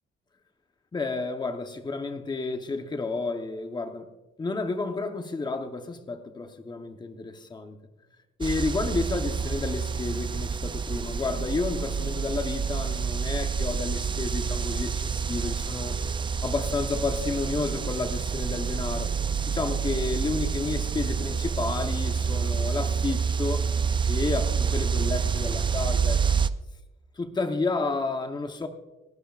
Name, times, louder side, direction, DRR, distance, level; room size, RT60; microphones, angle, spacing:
voice 1, 0.9-4.1 4.4-7.8 8.4-16.0 16.4-19.1 19.5-23.7 24.1-26.2 27.2-28.7, left 3 dB, 20° left, 0.9 m, -31 dB
sound 1, 8.4-26.5, right 6 dB, 25° right, 0.4 m, -28 dB
29.5 x 11.0 x 2.4 m
wide cardioid pair, 155°, 21 cm